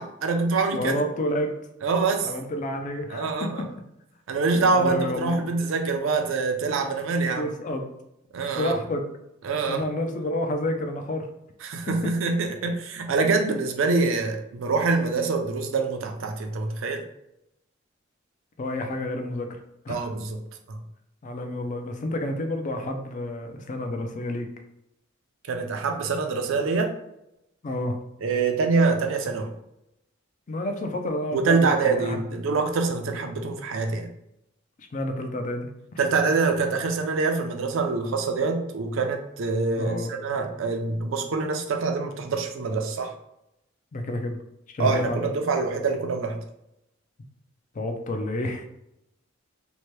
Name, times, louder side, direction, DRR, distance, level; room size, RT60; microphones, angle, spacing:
voice 1, 0.0-0.9 1.8-2.3 3.1-3.7 4.3-7.5 8.3-8.8 9.4-9.9 11.6-17.0 19.9-20.4 20.7-20.8 25.5-26.9 28.2-29.5 31.3-34.1 36.0-43.1 44.8-46.4, right 4 dB, 65° right, 5 dB, 0.4 m, -25 dB
voice 2, 0.7-1.5 2.2-3.5 4.7-5.4 7.4-7.9 8.6-9.1 9.7-11.3 13.2-13.4 18.6-19.6 19.9-20.0 21.2-24.5 27.6-28.0 30.5-32.2 34.9-35.7 39.8-40.2 43.9-44.4 44.7-45.3 47.8-48.6, left 1 dB, 40° left, 5 dB, 0.4 m, -29 dB
2.8 x 2.1 x 3.1 m, 0.83 s
head